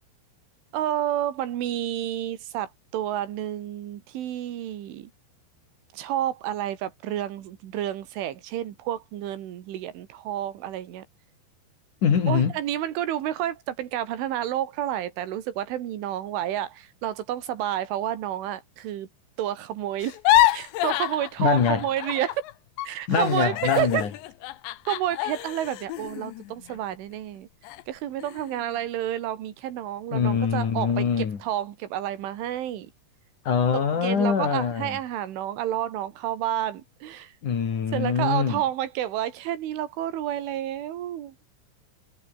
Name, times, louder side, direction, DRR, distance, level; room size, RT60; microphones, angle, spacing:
voice 1, 0.7-5.1 5.9-11.1 12.3-19.1 19.4-20.2 20.5-22.4 22.8-24.0 24.9-27.5 27.9-32.9 33.9-37.3 37.9-41.4, right 11 dB, 85° right, 4.6 m, -30 dB
voice 2, 12.0-12.5 21.4-21.8 23.1-24.1 30.1-31.4 33.5-35.0 37.4-38.6, left 6 dB, 45° left, 3.8 m, -23 dB
sound 1, 20.0-22.5 22.8-27.2 27.6-27.8 28.2-28.7, left 15 dB, 75° left, 3.3 m, -27 dB
omnidirectional pair, 5.4 m